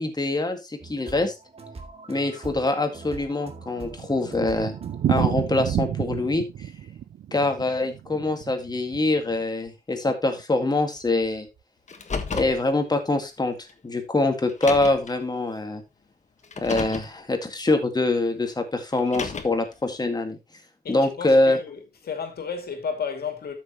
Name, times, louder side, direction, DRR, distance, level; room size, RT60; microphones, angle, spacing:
voice 1, 0.0-1.3 2.1-4.8 5.1-6.4 7.3-11.5 12.3-13.6 13.8-15.8 16.6-20.4 20.9-21.6, left 2 dB, 25° left, 2.0 m, -24 dB
sound 1, 0.8-5.8, right 3 dB, 40° right, 2.1 m, -43 dB
Thunder, 3.3-9.4 9.7-9.8 10.1-10.2 10.4-10.5 11.1-11.4, right 10 dB, 80° right, 0.5 m, -30 dB
Car, 11.9-12.6 13.7-13.8 14.5-15.1 16.4-17.1 18.9-19.7, left 4 dB, 45° left, 1.4 m, -32 dB
voice 2, 20.8-23.5, left 6 dB, 75° left, 2.6 m, -33 dB
13.0 x 6.5 x 3.1 m
wide cardioid pair, 105°, 16 cm